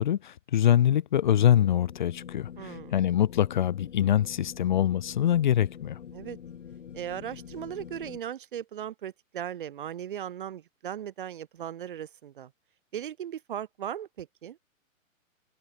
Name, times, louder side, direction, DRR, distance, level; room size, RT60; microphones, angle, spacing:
voice 1, 0.0-6.0, left 10 dB, 35° left, 1.3 m, -24 dB
sound 1, 1.3-8.2, left 8 dB, 55° left, 4.2 m, -45 dB
voice 2, 2.6-3.0 6.1-6.4 6.9-12.5 12.9-14.6, right 10 dB, 40° right, 1.4 m, -37 dB
hypercardioid pair, 170°, 41 cm